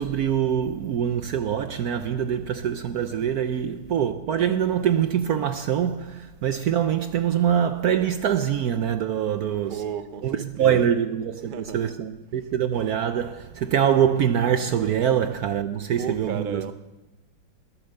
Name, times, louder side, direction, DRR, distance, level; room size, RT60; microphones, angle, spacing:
voice 1, 0.0-9.8 10.2-16.6, right 9 dB, 65° right, 0.9 m, -24 dB
voice 2, 9.7-10.8 11.4-11.9 16.0-16.7, right 7 dB, 50° right, 0.5 m, -34 dB
20.5 x 10.5 x 6.6 m
omnidirectional pair, 2.2 m